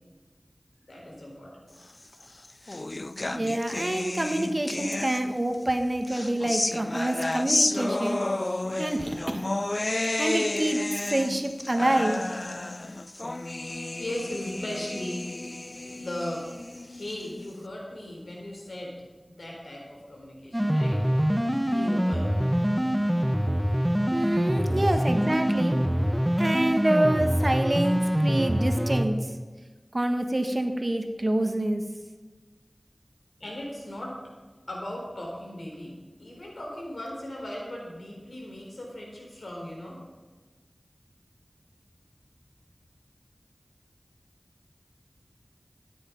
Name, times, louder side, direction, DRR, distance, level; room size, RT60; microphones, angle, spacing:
voice 1, 0.9-1.5 14.0-15.2 15.9-16.5 16.8-18.9 19.3-21.0 21.6-22.3 24.6-25.0 33.4-34.2 34.7-40.0, left 1 dB, 90° left, -1 dB, 4.0 m, -37 dB
sound 1, 2.1-5.6 6.0-17.5, left 2 dB, 45° left, 0.4 m, -31 dB
voice 2, 3.3-8.2 8.8-9.5 10.2-10.8 11.1-12.2 24.1-25.8 26.4-29.2 29.9-31.8, right 1 dB, 40° right, 6 dB, 1.4 m, -27 dB
sound 2, 20.5-29.1, equal, 5° right, 1.1 m, -25 dB
13.5 x 10.0 x 5.3 m, 1.3 s
wide cardioid pair, 55°, 0 cm